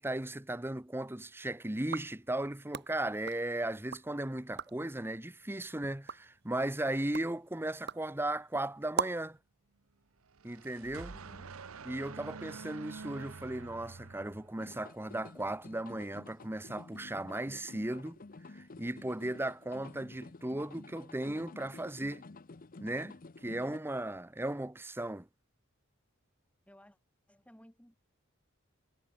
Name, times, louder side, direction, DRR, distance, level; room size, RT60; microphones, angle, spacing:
voice 1, 0.0-9.4 10.4-11.1 11.9-18.2 18.5-22.2 22.8-23.2 23.4-25.3, right 1 dB, 10° right, 0.9 m, -36 dB
sound 1, 1.8-4.1 4.4-4.9 5.4-9.4, right 6 dB, 55° right, 1.0 m, -42 dB
sound 2, 10.3-14.8, right 4 dB, 85° right, 0.9 m, -47 dB
voice 2, 11.1-11.6 26.7-27.0 27.3-28.0, equal, 5° left, 2.9 m, -58 dB
sound 3, 14.6-23.8, left 3 dB, 40° left, 0.7 m, -51 dB
head